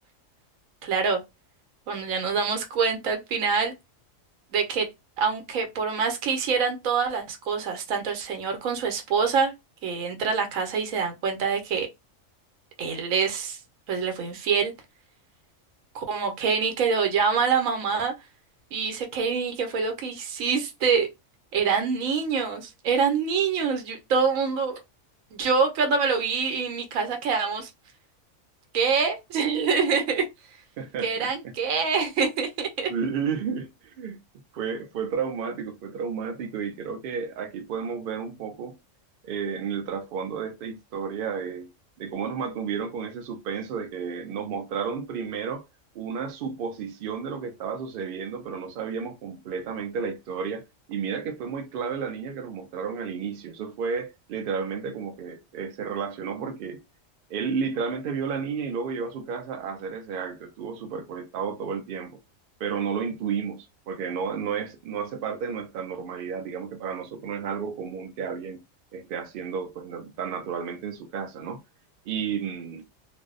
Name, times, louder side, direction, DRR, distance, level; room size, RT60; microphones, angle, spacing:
voice 1, 0.8-1.2 1.9-3.7 4.5-4.9 5.2-9.5 9.8-11.9 12.8-13.6 13.9-14.7 15.9-18.1 18.7-21.1 21.5-24.8 25.3-27.7 28.7-30.2 31.0-32.9, right 5 dB, 85° right, 1.1 m, -25 dB
voice 2, 30.8-31.3 32.9-34.2 34.5-38.8 39.2-41.7 42.0-45.6 45.9-56.8 57.3-62.2 62.6-68.6 68.9-71.6 72.1-72.9, right 6 dB, 65° right, 0.6 m, -32 dB
2.5 x 2.0 x 2.4 m
omnidirectional pair, 1.4 m